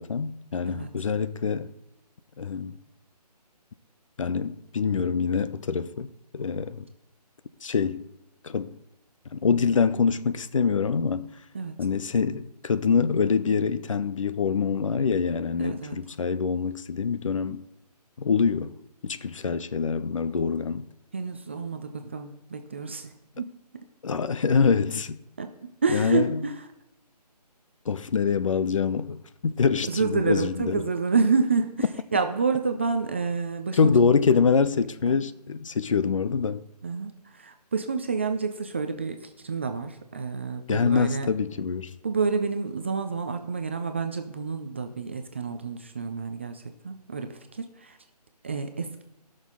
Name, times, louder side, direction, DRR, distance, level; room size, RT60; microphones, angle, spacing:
voice 1, 0.0-1.7 2.4-2.8 4.2-6.1 6.3-6.9 7.6-8.1 8.4-8.7 9.3-11.3 11.8-17.6 18.2-18.7 19.0-20.9 24.0-25.2 25.9-26.4 27.9-30.8 33.7-36.6 40.7-41.9, left 5 dB, 50° left, 0.6 m, -25 dB
voice 2, 15.6-16.0 21.1-23.5 25.4-25.5 25.8-26.5 29.9-31.9 32.1-33.9 35.1-35.2 36.8-41.3 42.0-48.0 48.4-49.0, right 4 dB, 20° right, 0.4 m, -28 dB
18.5 x 6.4 x 3.7 m
figure-of-eight pair, 155°, 21 cm